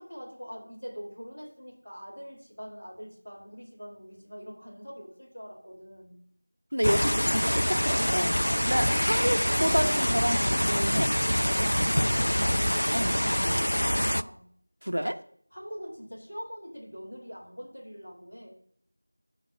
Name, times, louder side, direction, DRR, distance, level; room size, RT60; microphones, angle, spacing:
voice 1, 0.0-6.2 11.6-14.4 15.5-18.6, equal, 10° left, 1.6 m, -43 dB
voice 2, 6.7-8.4 8.6-11.2 12.9-13.2 14.8-15.2, equal, 65° right, 0.9 m, -29 dB
sound 1, 6.8-14.2, equal, 70° left, 0.4 m, -25 dB
12.0 x 4.0 x 5.9 m
figure-of-eight pair, 180°, 0 cm